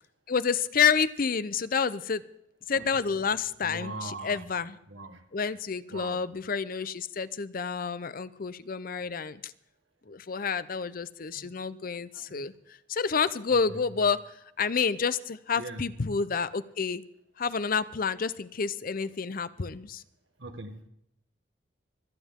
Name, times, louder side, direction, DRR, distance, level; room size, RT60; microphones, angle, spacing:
voice 1, 0.3-2.2 2.7-4.8 5.3-9.5 10.1-12.5 12.9-17.0 17.4-20.0, left 6 dB, 45° left, 16 dB, 0.6 m, -29 dB
voice 2, 3.6-4.4 4.9-5.2 5.9-6.2 11.3-11.5 12.1-12.5 13.7-13.8 15.6-15.9 20.4-20.9, right 2 dB, 70° right, 7 dB, 1.6 m, -41 dB
25.5 x 9.2 x 3.6 m, 0.78 s
head